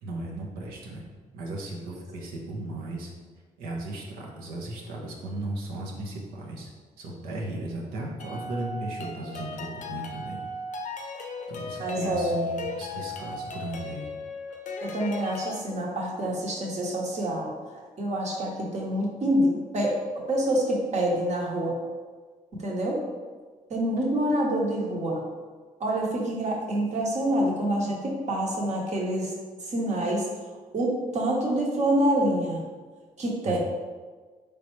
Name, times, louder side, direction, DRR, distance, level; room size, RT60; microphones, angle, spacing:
voice 1, 0.0-1.0 1.3-3.1 3.6-6.7 7.0-10.4 10.7-10.8 11.5-14.1 33.4-33.6, right 2 dB, 85° right, -1 dB, 0.7 m, -36 dB
sound 1, 8.2-15.6, left 3 dB, 55° left, 0.5 m, -36 dB
voice 2, 11.8-12.4 14.8-21.8 22.6-23.0 23.7-25.2 25.8-29.3 29.7-30.3 30.7-32.6 33.2-33.6, right 1 dB, 50° right, -2 dB, 1.0 m, -27 dB
3.9 x 3.3 x 3.1 m, 1.4 s
supercardioid pair, 65°, 15 cm